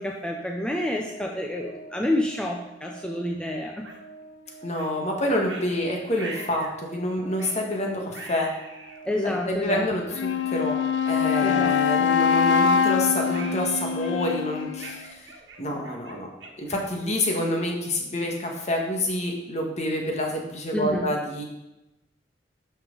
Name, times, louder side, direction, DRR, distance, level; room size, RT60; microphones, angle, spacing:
voice 1, 0.0-3.9 9.1-9.8 11.4-12.1 20.7-21.1, left 1 dB, 5° left, 0 dB, 0.6 m, -29 dB
Organ, 0.7-11.4, right 3 dB, 70° left, 1.8 m, -47 dB
sound 1, 3.8-4.0 4.7-4.9 5.5-5.7 6.2-6.8 7.4-7.6 8.1-9.0 9.8-9.9 10.6-10.8 11.2-11.3 11.9-13.0 13.3-13.7 14.0-14.3 14.8-17.4, right 3 dB, 70° right, 1.4 m, -43 dB
voice 2, 4.6-8.5 9.2-10.8 11.0-15.2 15.6-16.3 16.6-21.4, left 1 dB, 40° left, 1 dB, 1.6 m, -27 dB
Wind instrument woodwind instrument, 10.1-15.0, left 7 dB, 90° left, 0.5 m, -23 dB
11.5 x 5.8 x 3.9 m, 0.94 s
head